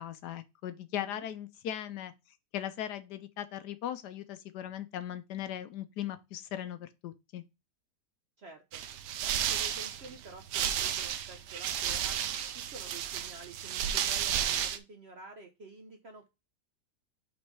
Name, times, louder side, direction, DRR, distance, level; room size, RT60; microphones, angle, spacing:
voice 1, 0.0-2.1 2.5-7.4, left 11 dB, 75° left, 1.1 m, -38 dB
voice 2, 8.4-8.8 9.2-12.2 12.5-16.3, right 2 dB, 50° right, 0.8 m, -50 dB
sound 1, 8.7-14.8, right 9 dB, 75° right, 1.2 m, -32 dB
5.3 x 4.0 x 4.5 m
omnidirectional pair, 1.9 m